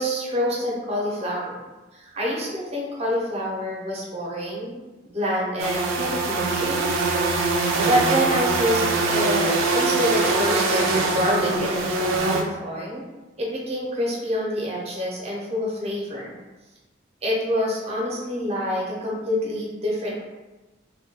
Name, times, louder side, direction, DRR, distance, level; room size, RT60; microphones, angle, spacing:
voice 1, 0.0-1.6 1.9-4.8 5.1-6.9 7.9-13.0 13.4-16.4 17.2-20.2, equal, 30° right, -4 dB, 0.6 m, -27 dB
sound 1, 5.6-12.4, right 3 dB, 80° right, 0.4 m, -23 dB
2.2 x 2.2 x 2.8 m, 1.1 s
head